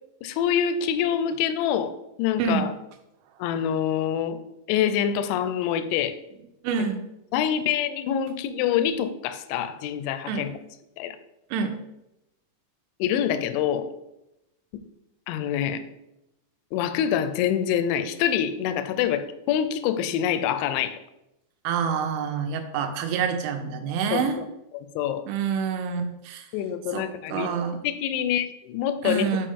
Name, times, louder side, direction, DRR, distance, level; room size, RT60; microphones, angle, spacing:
voice 1, 0.2-1.9 2.2-2.7 3.4-4.4 4.7-6.2 7.3-10.5 11.0-11.2 13.0-13.9 15.3-15.8 16.7-21.0 24.1-24.3 24.7-25.2 26.5-29.4, left 9 dB, 85° left, 11 dB, 2.8 m, -26 dB
voice 2, 2.4-2.7 6.6-7.0 10.3-10.5 11.5-11.7 21.6-24.4 25.3-26.5 26.9-27.0 27.3-27.8 29.0-29.5, right 6 dB, 90° right, 7 dB, 3.2 m, -27 dB
6.9 x 5.1 x 3.7 m, 0.88 s
omnidirectional pair, 5.5 m